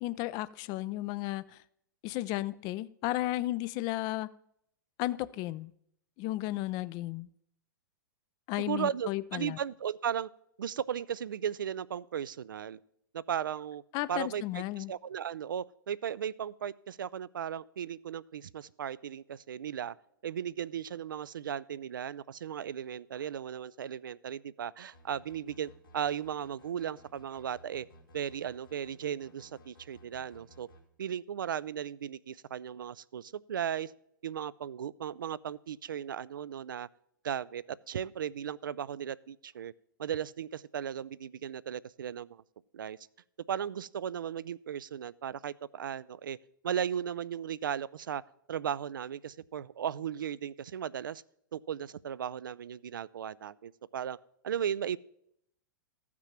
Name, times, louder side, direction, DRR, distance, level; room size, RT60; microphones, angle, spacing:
voice 1, 0.0-1.6 2.0-4.3 5.0-5.7 6.2-7.3 8.5-9.6 13.9-14.9, left 16 dB, 35° left, 17 dB, 0.4 m, -34 dB
voice 2, 8.7-10.3 10.6-12.8 13.1-13.8 14.1-19.9 20.2-27.9 28.1-30.7 31.0-33.9 34.2-36.9 37.2-39.7 40.0-42.4 42.7-43.0 43.5-46.4 46.6-48.2 48.5-51.2 51.5-54.2 54.4-55.0, right 9 dB, 70° right, 19 dB, 0.4 m, -36 dB
sound 1, 24.9-30.8, equal, 85° left, 2.7 m, -58 dB
13.5 x 6.0 x 5.8 m, 0.74 s
figure-of-eight pair, 105°, 11 cm